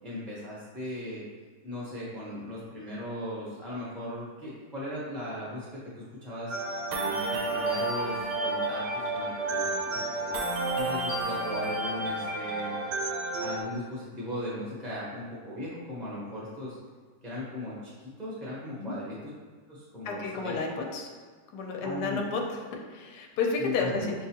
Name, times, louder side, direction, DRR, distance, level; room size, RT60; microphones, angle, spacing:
voice 1, 0.0-1.2 1.6-6.6 7.0-10.4 10.7-12.7 13.4-16.8 17.2-19.3 19.7-20.6 21.8-22.2 23.6-24.1, left 1 dB, ahead, -8 dB, 0.4 m, -38 dB
sound 1, 6.5-13.6, right 2 dB, 80° right, 1.2 m, -30 dB
voice 2, 20.0-21.1 21.5-24.1, left 4 dB, 75° left, 1 dB, 1.2 m, -31 dB
6.0 x 2.3 x 2.8 m, 1.5 s
omnidirectional pair, 1.9 m